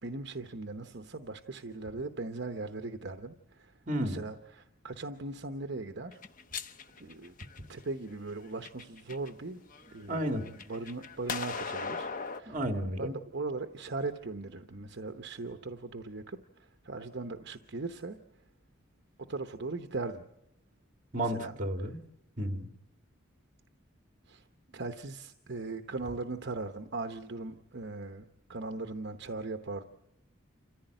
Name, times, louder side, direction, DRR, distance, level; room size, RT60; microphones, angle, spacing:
voice 1, 0.0-6.2 7.0-7.3 7.7-9.6 9.9-12.1 12.3-12.6 13.0-18.2 19.3-20.2 21.2-21.6 21.8-21.9 24.3-24.5 24.7-29.8, right 3 dB, 60° right, 7 dB, 0.9 m, -39 dB
voice 2, 3.9-4.2 10.1-10.4 12.5-13.1 21.1-22.0 22.4-22.7, equal, 40° right, 6 dB, 2.0 m, -32 dB
sound 1, 6.1-7.8 8.4-9.3 9.7-12.4, left 5 dB, 45° left, 0.9 m, -39 dB
28.5 x 15.0 x 9.0 m, 0.90 s
head